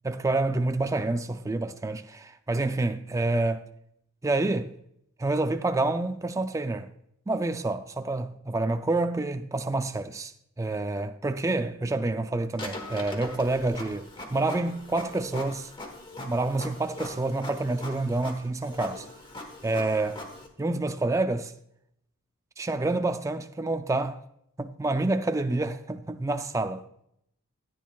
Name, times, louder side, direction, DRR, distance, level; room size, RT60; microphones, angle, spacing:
voice 1, 0.0-3.6 4.2-4.7 5.2-6.9 7.3-10.3 10.6-15.7 16.2-19.1 19.6-20.2 20.6-21.5 22.6-24.2 24.6-26.8, right 2 dB, 15° right, 0.3 m, -28 dB
Printer, 12.5-20.5, left 2 dB, 20° left, 1.2 m, -41 dB
14.0 x 9.2 x 2.3 m
head